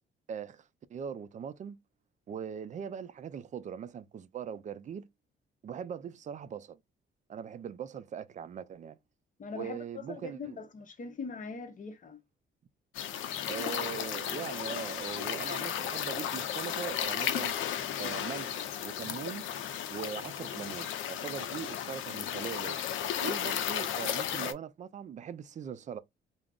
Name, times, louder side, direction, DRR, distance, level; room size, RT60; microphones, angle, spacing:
voice 1, 0.3-1.8 2.3-5.1 5.6-6.8 7.3-9.0 9.5-10.6 13.5-17.6 18.0-19.5 19.9-22.8 23.2-26.0, right 8 dB, 40° right, 0.4 m, -41 dB
voice 2, 9.4-12.2, left 4 dB, 40° left, 0.7 m, -41 dB
sound 1, 12.9-24.5, left 10 dB, 80° left, 0.5 m, -34 dB
2.3 x 2.0 x 3.5 m
cardioid pair, 90°, 20 cm